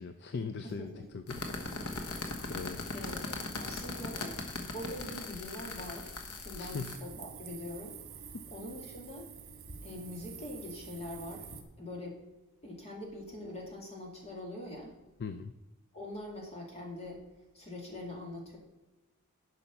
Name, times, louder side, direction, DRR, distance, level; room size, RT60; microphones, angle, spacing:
voice 1, 0.0-2.1 2.5-2.8 6.6-6.9 8.3-8.5 15.2-15.5, left 4 dB, 50° left, 9 dB, 0.4 m, -40 dB
voice 2, 0.6-1.1 2.9-6.1 6.4-8.0 8.5-9.3 9.8-11.5 11.8-12.2 12.6-14.9 15.9-17.2 17.5-18.6, left 1 dB, 30° left, -1 dB, 2.3 m, -43 dB
sound 1, 1.3-7.0, left 2 dB, 90° left, 1.3 m, -39 dB
sound 2, 6.6-11.6, right 6 dB, 65° right, 1.4 m, -48 dB
11.0 x 5.1 x 5.8 m, 1.1 s
head